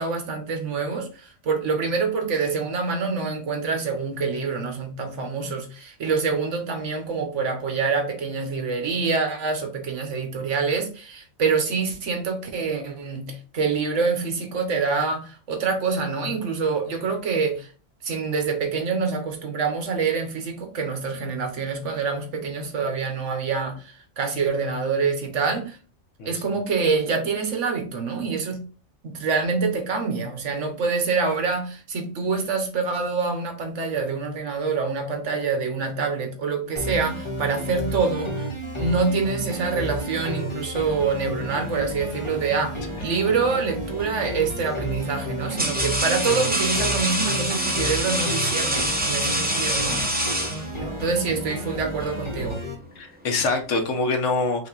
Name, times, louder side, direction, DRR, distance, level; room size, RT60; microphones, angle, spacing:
voice 1, 0.0-17.7 18.0-25.8 26.2-28.6 29.0-38.5 38.8-50.3 50.8-52.7, right 4 dB, 65° right, 1.3 m, -26 dB
sound 1, 36.8-52.8, right 1 dB, 25° left, 1.0 m, -32 dB
sound 2, 43.9-44.3 45.1-51.0, right 1 dB, 10° right, 0.7 m, -26 dB
voice 2, 53.0-54.7, left 3 dB, 70° left, 1.2 m, -25 dB
5.3 x 2.5 x 3.9 m
omnidirectional pair, 1.3 m